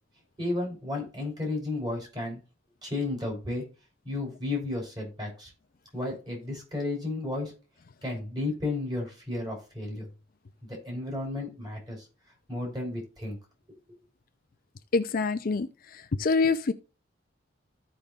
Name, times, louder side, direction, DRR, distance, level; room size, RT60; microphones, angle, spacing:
voice 1, 0.4-2.4 2.8-3.6 4.0-5.5 5.9-7.5 8.0-10.1 10.8-12.0 12.5-13.4, left 2 dB, 20° right, 3.3 m, -33 dB
voice 2, 14.9-15.7 16.2-16.7, left 4 dB, 50° left, 0.5 m, -25 dB
15.0 x 5.1 x 2.4 m
head